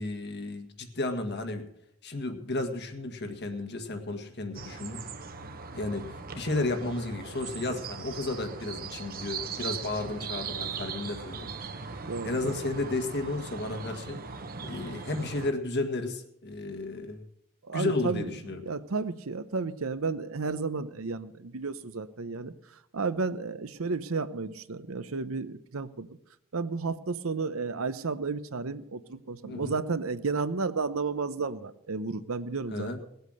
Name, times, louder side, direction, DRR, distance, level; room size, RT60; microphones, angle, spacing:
voice 1, 0.0-1.6 2.0-5.0 5.7-11.5 12.2-14.2 14.6-17.2 17.7-18.6 29.4-29.8 32.7-33.0, left 2 dB, 55° left, 6 dB, 1.8 m, -33 dB
sound 1, 4.5-15.5, right 5 dB, 45° right, 1.0 m, -39 dB
voice 2, 12.1-12.6 17.7-18.3 18.6-22.5 22.9-26.1 26.5-33.1, right 4 dB, 75° right, 13 dB, 0.8 m, -32 dB
19.0 x 8.1 x 6.6 m, 0.77 s
head